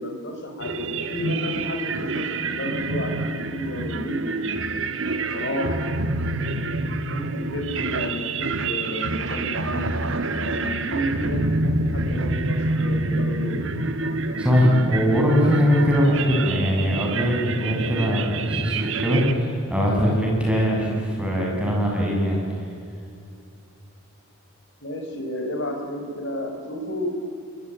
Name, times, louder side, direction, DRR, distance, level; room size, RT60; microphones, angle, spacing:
voice 1, 0.0-4.7 5.3-5.8 7.1-9.9 10.3-13.7 24.8-27.1, equal, 55° left, 3 dB, 5.2 m, -31 dB
sound 1, 0.6-19.3, right 2 dB, 55° right, 1.5 m, -27 dB
voice 2, 14.4-22.4, equal, 5° right, -2 dB, 7.3 m, -21 dB
27.5 x 23.0 x 9.3 m, 2.6 s
head